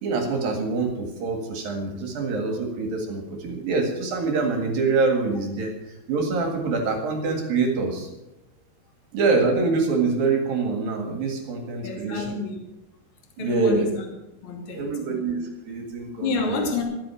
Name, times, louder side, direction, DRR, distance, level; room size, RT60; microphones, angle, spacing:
voice 1, 0.0-8.1 9.1-12.2 13.4-13.9 14.7-16.7, right 4 dB, 55° right, 3 dB, 3.2 m, -25 dB
voice 2, 11.8-12.6 13.4-14.0 14.4-15.2 16.2-16.8, left 3 dB, 35° left, 2 dB, 2.3 m, -29 dB
13.5 x 9.2 x 7.4 m, 0.93 s
omnidirectional pair, 5.6 m